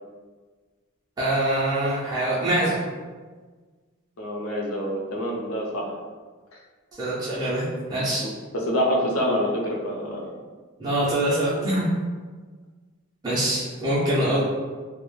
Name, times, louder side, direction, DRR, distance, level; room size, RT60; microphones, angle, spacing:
voice 1, 1.2-2.8 7.0-8.2 10.8-11.9 13.2-14.4, right 1 dB, 20° right, -9 dB, 0.4 m, -24 dB
voice 2, 4.2-5.9 8.2-10.3, equal, 80° left, -2 dB, 0.5 m, -26 dB
2.2 x 2.0 x 3.1 m, 1.4 s
head